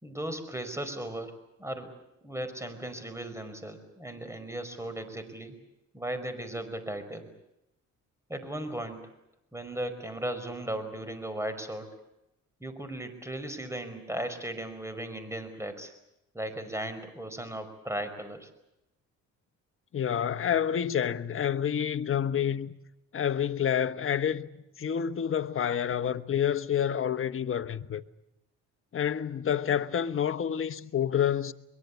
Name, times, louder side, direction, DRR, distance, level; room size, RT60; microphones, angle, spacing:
voice 1, 0.0-1.9 2.2-5.6 5.9-7.3 8.3-9.0 9.5-11.9 12.6-15.9 16.3-18.5, right 1 dB, 10° right, 5.0 m, -36 dB
voice 2, 19.9-22.7 23.1-24.5 24.8-28.0 28.9-31.5, left 9 dB, 45° left, 1.2 m, -28 dB
23.0 x 22.5 x 8.4 m
cardioid pair, 90°, 30 cm